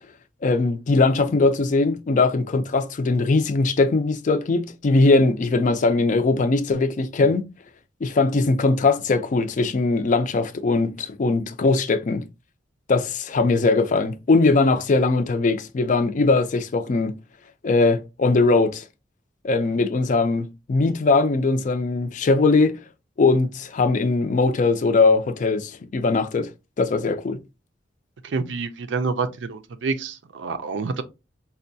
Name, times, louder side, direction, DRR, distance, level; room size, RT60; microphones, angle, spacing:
voice 1, 0.4-7.5 8.0-12.2 12.9-17.2 17.6-18.8 19.4-22.8 23.2-26.5 26.8-27.4, left 3 dB, 45° left, 0.4 m, -20 dB
voice 2, 28.2-31.0, right 4 dB, 80° right, 0.5 m, -28 dB
4.2 x 2.2 x 2.6 m
head